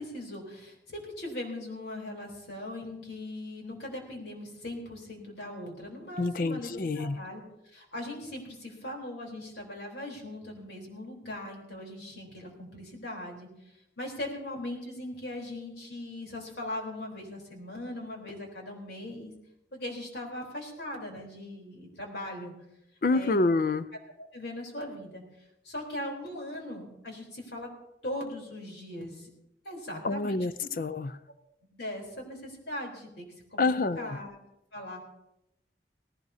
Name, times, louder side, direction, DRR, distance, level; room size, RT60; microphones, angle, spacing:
voice 1, 0.0-13.5 14.0-19.3 19.7-22.5 23.1-23.4 24.3-25.2 25.6-27.7 28.0-29.3 29.6-30.4 31.7-33.2 33.5-34.3 34.7-35.0, left 1 dB, 70° left, 0 dB, 3.7 m, -39 dB
voice 2, 6.2-7.2 23.0-23.9 30.0-31.1 33.6-34.2, left 3 dB, 50° left, 14 dB, 0.4 m, -27 dB
18.0 x 16.5 x 2.8 m, 0.85 s
head